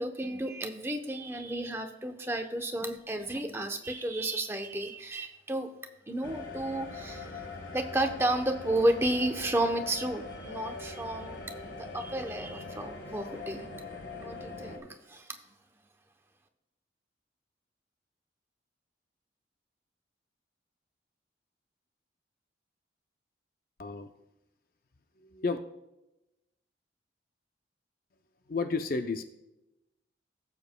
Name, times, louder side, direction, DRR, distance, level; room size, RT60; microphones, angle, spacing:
voice 1, 0.0-5.7 6.1-7.5 7.7-13.6 14.2-15.3, right 1 dB, 15° right, 4 dB, 0.8 m, -32 dB
sound 1, 6.2-14.8, left 3 dB, 80° left, 1.6 m, -42 dB
voice 2, 25.2-25.6 28.5-29.2, left 4 dB, 50° left, 7 dB, 0.5 m, -31 dB
17.0 x 7.1 x 2.2 m, 0.94 s
head